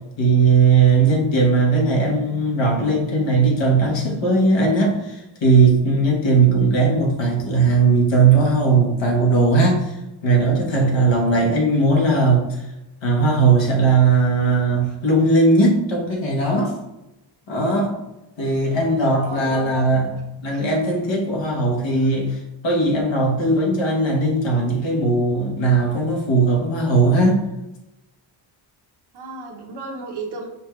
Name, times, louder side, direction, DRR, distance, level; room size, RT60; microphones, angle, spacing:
voice 1, 0.2-9.9 10.2-12.5 13.0-16.7 17.5-17.9 18.4-20.2 20.4-27.4, right 3 dB, 60° left, 0 dB, 1.2 m, -18 dB
voice 2, 19.2-19.8 29.1-30.5, right 3 dB, 55° right, 1 dB, 0.9 m, -34 dB
5.4 x 2.4 x 3.1 m, 0.94 s
cardioid pair, 105°, 49 cm